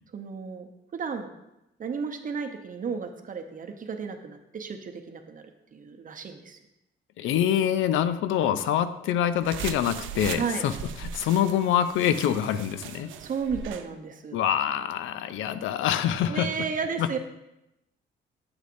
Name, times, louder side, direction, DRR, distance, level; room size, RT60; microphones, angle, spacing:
voice 1, 0.1-1.3 1.8-5.4 5.7-6.6 10.3-10.6 13.2-14.4 16.3-17.2, right 6 dB, 45° right, 6 dB, 0.8 m, -33 dB
voice 2, 7.2-10.7 11.0-13.1 14.3-16.5 17.0-17.2, left 10 dB, 85° left, 12 dB, 0.4 m, -25 dB
sound 1, 9.4-13.9, right 8 dB, 80° right, 0.5 m, -39 dB
8.0 x 6.4 x 2.6 m, 0.89 s
cardioid pair, 90°, 20 cm